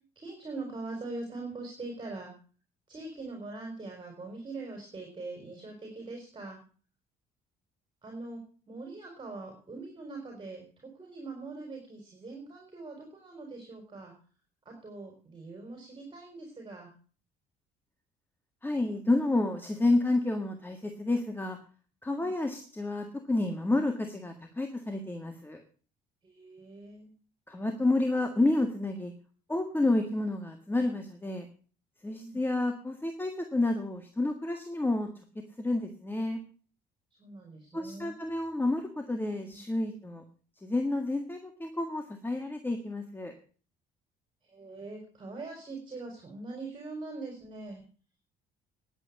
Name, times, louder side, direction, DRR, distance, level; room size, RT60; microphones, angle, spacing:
voice 1, 0.2-2.3 2.9-6.6 8.0-8.4 8.7-14.1 14.6-16.9 22.2-22.3 26.2-27.1 29.7-29.9 32.2-32.4 37.2-38.1 39.4-39.6 44.4-47.8, right 3 dB, 25° right, 1 dB, 4.4 m, -42 dB
voice 2, 18.6-21.6 22.0-25.6 27.5-29.1 29.5-31.5 32.0-35.1 35.6-36.4 37.7-40.2 40.6-43.3, left 2 dB, 10° left, 4 dB, 1.8 m, -30 dB
10.5 x 8.1 x 8.2 m, 0.41 s
cardioid pair, 110°, 17 cm